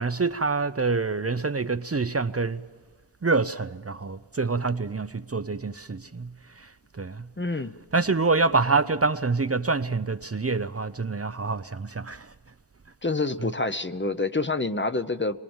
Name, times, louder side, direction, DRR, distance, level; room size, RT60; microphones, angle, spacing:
voice 1, 0.0-2.6 3.2-6.3 6.6-6.7 7.0-7.3 7.9-12.3, right 4 dB, 35° right, 0.7 m, -26 dB
voice 2, 7.4-7.7 13.0-15.4, left 3 dB, 30° left, 1.0 m, -27 dB
23.0 x 22.5 x 7.2 m
wide cardioid pair, 50°, 40 cm